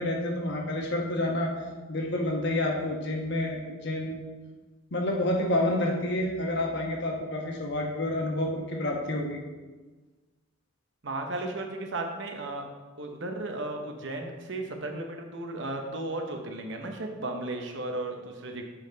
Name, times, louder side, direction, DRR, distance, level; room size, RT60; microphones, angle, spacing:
voice 1, 0.0-1.5 1.9-4.2 4.9-9.4, left 1 dB, 55° left, 0 dB, 1.2 m, -29 dB
voice 2, 11.0-12.7 13.0-18.6, right 2 dB, 60° right, 3 dB, 0.9 m, -35 dB
7.3 x 5.3 x 3.9 m, 1.3 s
head